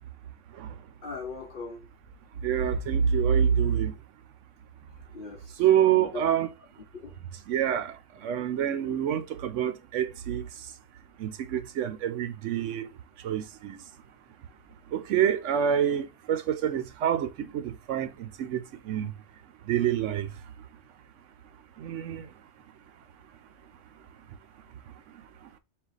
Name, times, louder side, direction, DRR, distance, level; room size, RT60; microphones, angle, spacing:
voice 1, 1.0-1.8 5.1-6.5 6.9-7.1, left 4 dB, 50° left, 0.9 m, -40 dB
voice 2, 2.4-4.0 5.6-6.5 7.5-10.7 11.2-13.8 14.9-19.1 19.6-20.3 21.8-22.3, right 9 dB, 85° right, 1.0 m, -27 dB
4.3 x 2.3 x 3.9 m
omnidirectional pair, 1.2 m